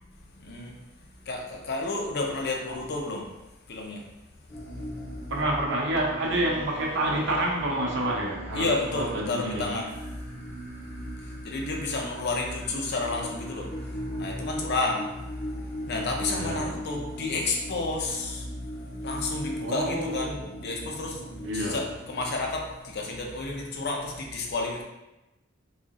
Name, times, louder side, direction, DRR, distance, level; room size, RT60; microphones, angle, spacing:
voice 1, 0.4-0.7 1.3-3.2 3.7-4.0 8.5-9.9 11.4-13.7 14.2-15.1 15.9-18.5 19.0-20.3 20.6-21.2 21.5-24.8, left 3 dB, 55° left, 1 dB, 0.6 m, -31 dB
sound 1, 4.5-24.2, equal, 10° left, 0.7 m, -38 dB
voice 2, 5.3-9.6 16.3-16.7 19.6-20.5 21.4-21.9, right 1 dB, 60° right, -1 dB, 0.7 m, -28 dB
Bowed string instrument, 6.3-10.3, equal, 10° right, 1.1 m, -45 dB
4.0 x 2.8 x 2.4 m, 0.98 s
head